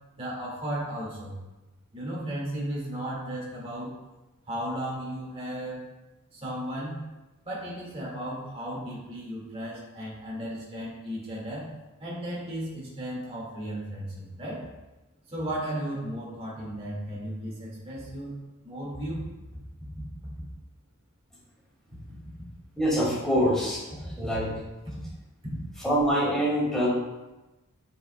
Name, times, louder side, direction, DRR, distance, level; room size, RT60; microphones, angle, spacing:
voice 1, 0.2-1.4 1.9-3.9 4.5-5.8 6.3-7.0 7.4-11.7 12.0-14.7 15.3-18.3 18.6-19.2 20.2-20.3, right 1 dB, 25° right, -6 dB, 2.0 m, -35 dB
voice 2, 22.8-23.8 24.2-24.5 25.8-26.9, equal, 5° left, -7 dB, 2.2 m, -24 dB
8.2 x 5.5 x 2.3 m, 1.1 s
head